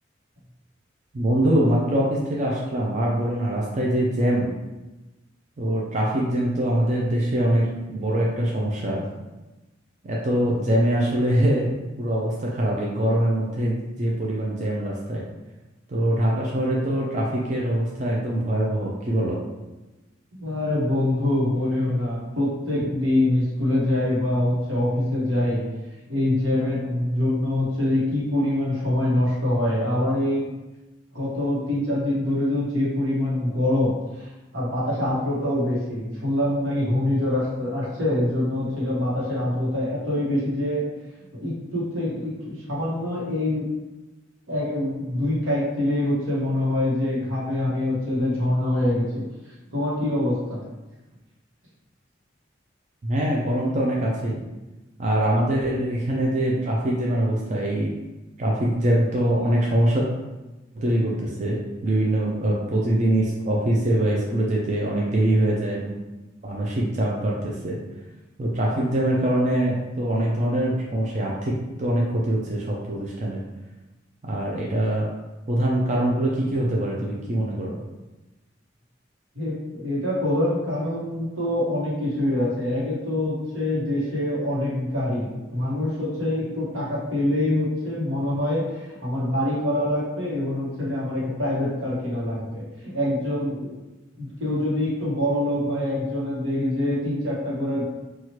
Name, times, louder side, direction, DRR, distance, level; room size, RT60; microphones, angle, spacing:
voice 1, 1.1-4.5 5.6-9.0 10.0-15.2 15.9-19.4 53.0-54.4 55.0-57.9 58.4-60.1 60.8-65.9 66.4-67.8 68.4-73.4 74.2-75.1 75.5-77.8, right 1 dB, 40° right, -3 dB, 0.4 m, -23 dB
voice 2, 20.3-25.6 26.1-30.5 31.1-33.9 34.2-40.8 41.3-43.7 44.5-50.6 79.3-93.7 94.1-97.8, left 1 dB, 85° right, -6 dB, 1.1 m, -25 dB
2.9 x 2.4 x 2.9 m, 1.1 s
head